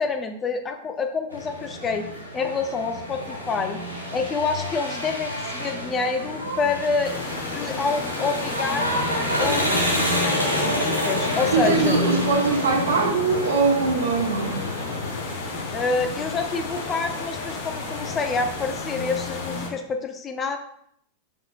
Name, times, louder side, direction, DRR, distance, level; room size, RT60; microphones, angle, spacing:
voice 1, 0.0-2.1 2.3-3.8 4.1-7.2 7.5-9.0 9.4-12.0 15.7-20.6, left 4 dB, 25° left, 6 dB, 0.7 m, -27 dB
sound 1, 1.3-19.7, left 1 dB, 90° right, 2.0 m, -29 dB
sound 2, 7.0-19.7, left 5 dB, 45° left, 1.1 m, -35 dB
voice 2, 11.5-14.6, right 4 dB, 65° right, 2 dB, 1.2 m, -22 dB
6.5 x 5.9 x 2.5 m, 0.69 s
figure-of-eight pair, 90°, 0 cm